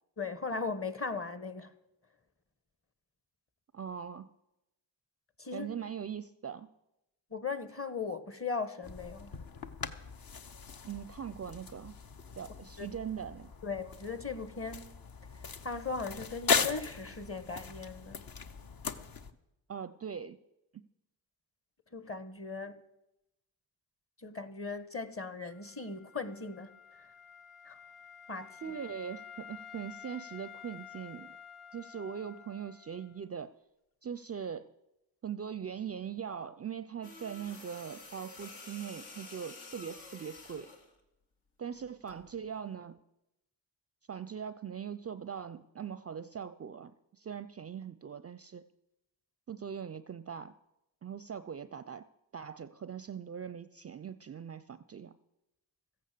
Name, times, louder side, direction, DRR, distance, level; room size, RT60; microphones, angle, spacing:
voice 1, 0.2-1.7 5.4-5.7 7.3-9.3 12.8-12.9 13.6-14.9 15.6-18.2 21.9-22.8 24.2-27.1 27.6-27.8 28.3-28.7, left 4 dB, 30° left, 1.3 m, -38 dB
voice 2, 3.7-4.3 5.5-6.7 10.8-11.9 12.3-13.5 19.7-20.4 20.7-20.8 28.6-31.4 31.7-33.5 34.0-34.7 35.2-40.7 41.6-43.0 44.1-48.7 49.5-50.5 51.0-52.0 52.3-55.1, right 7 dB, 30° right, 0.5 m, -41 dB
sound 1, 8.8-19.3, left 5 dB, 45° left, 1.0 m, -38 dB
Wind instrument woodwind instrument, 25.5-33.2, left 8 dB, 90° left, 0.7 m, -51 dB
sound 2, 37.0-40.9 42.1-42.3, left 3 dB, 70° left, 2.2 m, -50 dB
14.0 x 8.7 x 6.7 m
supercardioid pair, 45°, 48 cm